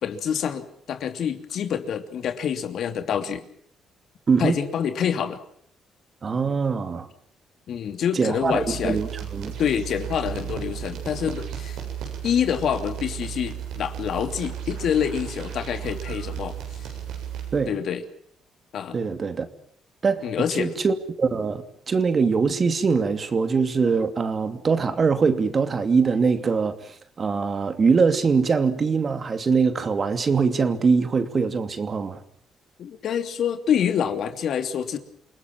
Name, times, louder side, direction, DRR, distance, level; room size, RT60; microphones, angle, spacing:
voice 1, 0.0-3.4 4.4-5.4 7.7-9.0 9.6-11.8 12.2-16.9 17.7-18.0 18.7-19.0 20.2-20.7 32.8-35.0, left 8 dB, 70° left, 3.0 m, -26 dB
voice 2, 6.2-7.1 8.1-9.6 17.5-17.7 18.9-19.5 20.0-20.3 20.6-32.2, right 5 dB, 40° right, 2.7 m, -23 dB
sound 1, 8.4-17.8, right 9 dB, 90° right, 7.7 m, -34 dB
28.5 x 19.5 x 7.5 m
cardioid pair, 90°, 0 cm